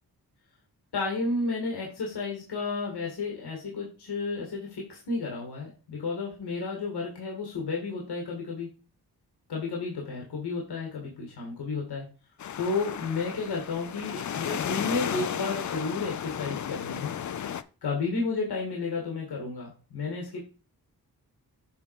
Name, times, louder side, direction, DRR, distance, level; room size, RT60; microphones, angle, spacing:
voice 1, 0.9-8.8 9.5-12.1 12.6-17.2 17.8-20.4, left 3 dB, 85° left, -1 dB, 2.1 m, -32 dB
sound 1, 12.4-17.6, left 9 dB, 50° left, 0.5 m, -34 dB
7.1 x 3.8 x 4.8 m, 0.35 s
cardioid pair, 70°, 38 cm